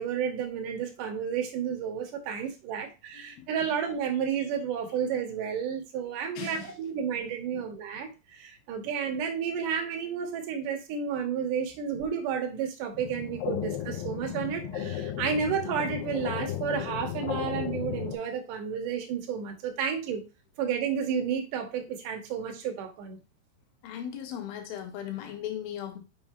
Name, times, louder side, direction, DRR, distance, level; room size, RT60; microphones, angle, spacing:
voice 1, 0.0-20.2 20.6-23.2, right 7 dB, 70° right, 2.0 m, -31 dB
voice 2, 6.3-6.7 7.5-7.6 23.8-26.0, left 10 dB, 70° left, 2.6 m, -37 dB
sound 1, 12.9-18.1, left 10 dB, 85° left, 2.0 m, -34 dB
6.9 x 5.3 x 2.9 m
omnidirectional pair, 5.0 m